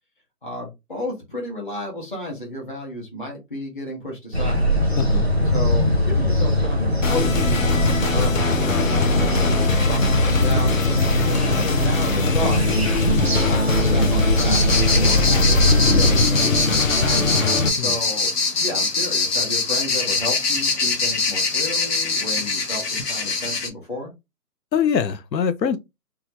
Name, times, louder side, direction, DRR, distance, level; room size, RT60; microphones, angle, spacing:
voice 1, 0.4-5.0 5.4-8.6 8.8-10.7 11.2-12.8 13.2-16.9 17.7-24.1, left 1 dB, 30° left, 1.1 m, -33 dB
sound 1, 4.3-16.3, left 1 dB, 45° right, 0.4 m, -21 dB
sound 2, 7.0-17.7, left 2 dB, 55° left, 0.7 m, -22 dB
sound 3, 14.4-23.7, left 3 dB, 70° left, 1.1 m, -23 dB
voice 2, 24.7-25.8, left 7 dB, 90° left, 0.7 m, -23 dB
3.0 x 2.3 x 2.8 m
hypercardioid pair, 180°, 49 cm